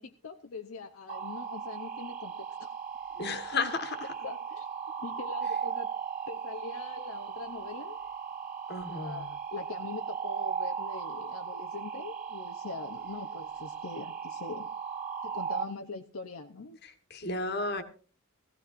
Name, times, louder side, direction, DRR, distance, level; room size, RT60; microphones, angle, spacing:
voice 1, 0.0-2.7 3.5-3.7 4.2-4.7 5.0-5.9 6.3-8.0 8.9-14.7 15.2-16.8, left 3 dB, 80° left, 7 dB, 0.7 m, -42 dB
sound 1, 1.1-15.6, right 7 dB, 35° right, 1.9 m, -37 dB
voice 2, 3.2-4.0 8.7-9.3 17.1-17.8, left 3 dB, 50° left, 8 dB, 1.5 m, -32 dB
18.0 x 15.0 x 2.5 m, 0.37 s
head